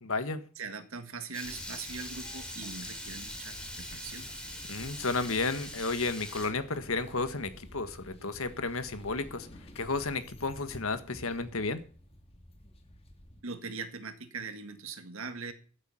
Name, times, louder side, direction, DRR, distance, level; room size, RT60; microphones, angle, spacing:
voice 1, 0.0-0.4 4.7-9.5 9.7-11.8, left 3 dB, 75° left, 10 dB, 1.5 m, -32 dB
voice 2, 0.6-4.3 13.4-15.5, right 4 dB, 70° right, 9 dB, 1.8 m, -41 dB
Water tap faucet / Liquid, 1.3-6.5, left 1 dB, 5° left, 3.0 m, -42 dB
sound 1, 1.4-13.4, equal, 30° left, 1.7 m, -51 dB
14.0 x 8.3 x 5.8 m, 0.41 s
head